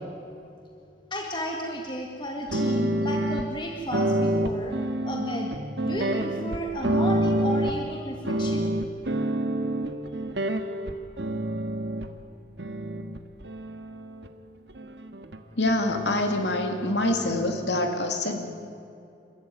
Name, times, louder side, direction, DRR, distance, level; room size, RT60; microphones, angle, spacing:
voice 1, 1.1-4.8 5.0-5.5 5.8-8.7, equal, 25° left, 1 dB, 1.9 m, -33 dB
sound 1, 2.5-3.5 3.9-7.9 8.2-12.1 12.6-14.3 14.7-15.4 15.7-17.9, right 1 dB, 75° right, 1.6 m, -28 dB
voice 2, 15.6-18.5, left 2 dB, 75° left, 5 dB, 2.4 m, -25 dB
29.5 x 14.0 x 9.4 m, 2.5 s
head